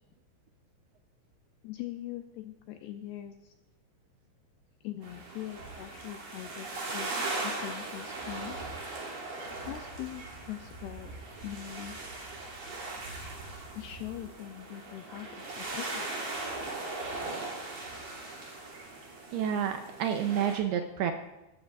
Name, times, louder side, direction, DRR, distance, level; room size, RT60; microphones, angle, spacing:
voice 1, 1.6-3.5 4.8-7.1 7.4-8.6 9.6-11.1 11.4-12.0 13.7-16.1, left 13 dB, 85° left, 6 dB, 2.3 m, -42 dB
sound 1, 5.0-20.6, right 2 dB, 55° right, 4.2 m, -39 dB
voice 2, 19.3-21.1, right 9 dB, 80° right, 6 dB, 2.4 m, -29 dB
22.0 x 13.0 x 2.5 m, 0.99 s
omnidirectional pair, 5.2 m